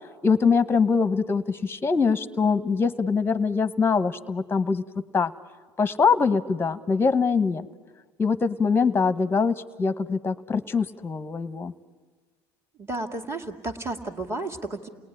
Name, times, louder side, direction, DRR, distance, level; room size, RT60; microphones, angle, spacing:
voice 1, 0.2-4.8 5.1-5.3 5.8-7.7 8.2-11.7, left 5 dB, 15° left, 12 dB, 1.0 m, -23 dB
voice 2, 12.8-14.9, right 2 dB, 20° right, 3 dB, 2.3 m, -32 dB
29.5 x 19.0 x 9.8 m, 1.5 s
supercardioid pair, 105°, 13 cm